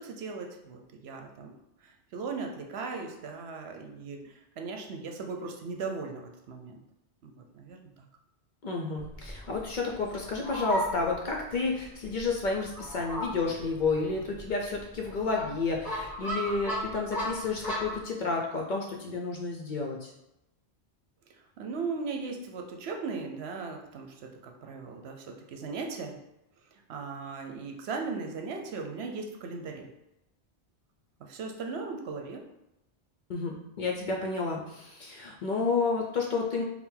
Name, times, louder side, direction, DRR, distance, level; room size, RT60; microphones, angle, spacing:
voice 1, 0.0-1.5 1.8-6.8 7.2-7.8 21.6-26.2 26.9-29.9 31.3-32.4, right 4 dB, 75° right, 3 dB, 0.9 m, -38 dB
voice 2, 8.6-20.1 33.3-36.6, left 4 dB, 55° left, 0 dB, 0.6 m, -31 dB
Fowl, 9.0-18.0, equal, ahead, 1.1 m, -37 dB
4.3 x 2.1 x 3.7 m, 0.90 s
omnidirectional pair, 1.1 m